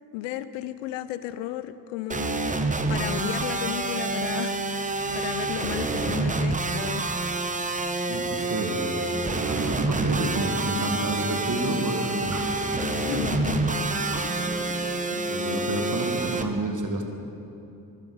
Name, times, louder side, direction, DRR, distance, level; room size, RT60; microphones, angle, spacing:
voice 1, 0.1-2.5 2.9-7.0 12.8-13.7, left 12 dB, 80° left, 13 dB, 0.6 m, -34 dB
sound 1, 2.1-16.4, right 3 dB, 15° right, 0.8 m, -28 dB
voice 2, 8.1-13.1 14.9-17.0, right 2 dB, 40° right, 4 dB, 1.8 m, -30 dB
sound 2, 8.6-16.5, left 4 dB, 60° left, 1.3 m, -37 dB
12.5 x 12.5 x 4.0 m, 2.7 s
hypercardioid pair, 45°, 45 cm